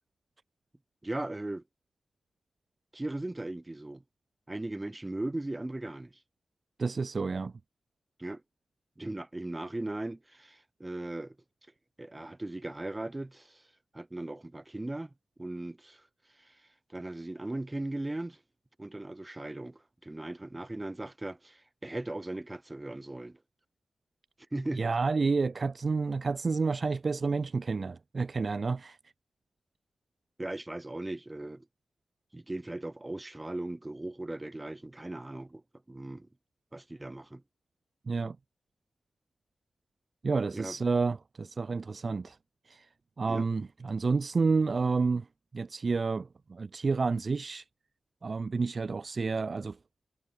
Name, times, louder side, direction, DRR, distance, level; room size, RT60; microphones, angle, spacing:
voice 1, 1.0-1.6 2.9-4.0 4.5-6.1 8.2-8.4 9.0-11.4 12.0-13.6 13.9-15.1 15.4-16.0 16.4-16.6 16.9-18.4 18.8-23.4 24.5-24.9 30.4-31.7 32.3-35.6 35.9-36.3 36.7-37.4 40.5-40.8 43.3-43.5, right 2 dB, 15° right, 5.8 m, -38 dB
voice 2, 6.8-7.5 24.8-29.0 38.1-38.4 40.2-42.4 42.7-42.9 43.2-45.3 45.5-47.6 48.2-49.8, right 4 dB, 35° right, 1.8 m, -30 dB
wide cardioid pair, 180°, 0 cm